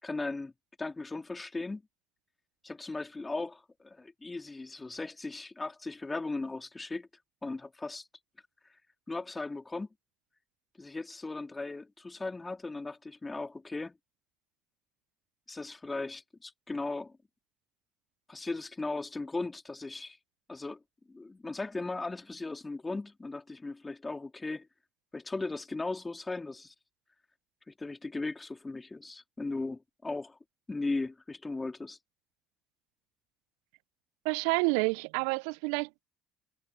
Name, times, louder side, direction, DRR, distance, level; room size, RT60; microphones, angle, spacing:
voice 1, 0.0-0.5 0.8-1.8 2.6-7.1 7.4-8.1 9.1-9.9 10.8-13.9 15.5-17.2 18.3-20.2 20.5-20.8 21.1-24.7 25.1-26.7 27.7-30.4 30.7-32.0, left 3 dB, 20° left, 3.4 m, -37 dB
voice 2, 34.2-36.0, right 31 dB, 70° right, 0.7 m, -29 dB
hypercardioid pair, 60°, 0 cm